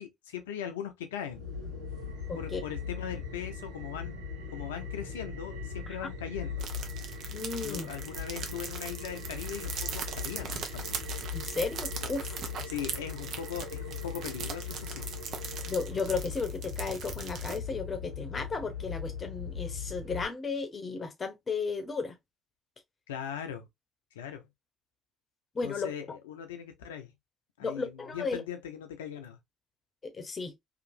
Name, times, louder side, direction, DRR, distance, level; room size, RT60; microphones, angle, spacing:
voice 1, 0.0-1.4 2.3-4.1 4.5-6.6 7.6-11.0 12.7-15.1 23.1-23.7 24.1-24.5 25.6-27.1 27.6-29.4, left 8 dB, 80° left, 0.5 m, -40 dB
sound 1, 1.3-20.2, left 5 dB, 80° right, 1.0 m, -39 dB
voice 2, 2.3-2.6 7.3-7.9 11.3-12.4 15.7-22.2 25.5-25.9 27.6-28.4 30.0-30.5, left 4 dB, 35° left, 0.8 m, -34 dB
sound 2, 6.6-17.6, right 6 dB, 60° right, 0.6 m, -40 dB
2.9 x 2.5 x 2.6 m
hypercardioid pair, 50°, 0 cm